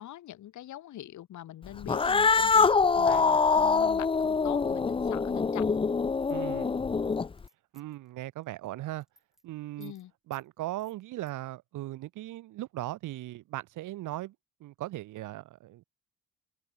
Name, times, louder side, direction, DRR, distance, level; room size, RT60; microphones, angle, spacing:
voice 1, 0.0-2.7 3.0-5.8 9.8-10.1, left 13 dB, 75° left, 2.3 m, -43 dB
Cat, 1.8-7.4, left 5 dB, 20° left, 0.5 m, -25 dB
sound 1, 6.2-8.1 8.4-8.7 8.9-9.4 9.8-10.0 10.3-10.5 10.8-11.3, equal, ahead, 5.5 m, -61 dB
voice 2, 6.3-6.8 7.7-9.0 9.4-9.9 10.3-14.3 14.6-15.8, right 16 dB, 85° right, 1.3 m, -38 dB
open air
cardioid pair, 90°, 30 cm